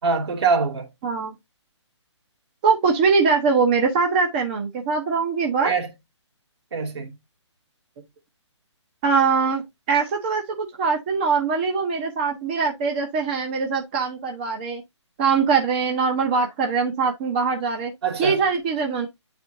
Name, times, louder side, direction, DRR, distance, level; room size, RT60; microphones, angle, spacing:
voice 1, 0.0-0.9 5.6-5.9 6.7-7.1 18.0-18.4, right 5 dB, 55° right, 2.6 m, -23 dB
voice 2, 1.0-1.3 2.6-5.7 9.0-9.6 9.9-14.8 15.2-17.9 18.2-19.1, right 5 dB, 20° right, 0.8 m, -22 dB
9.5 x 4.3 x 2.7 m
hypercardioid pair, 165°, 16 cm